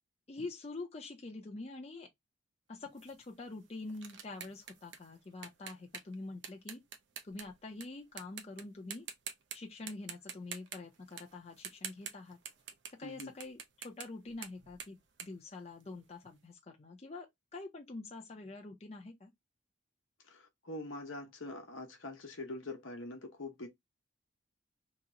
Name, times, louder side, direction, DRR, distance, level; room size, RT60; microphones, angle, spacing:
voice 1, 0.3-2.1 2.7-6.8 7.2-9.1 9.5-12.4 13.0-13.6 13.8-17.3 17.5-19.3, left 3 dB, 30° left, 0.5 m, -46 dB
sound 1, 3.0-7.8 8.2-8.6 8.9-9.6 9.9-12.9 13.2-16.2, right 7 dB, 65° right, 0.6 m, -47 dB
voice 2, 20.2-23.7, left 2 dB, 80° left, 0.9 m, -44 dB
2.9 x 2.1 x 3.6 m
head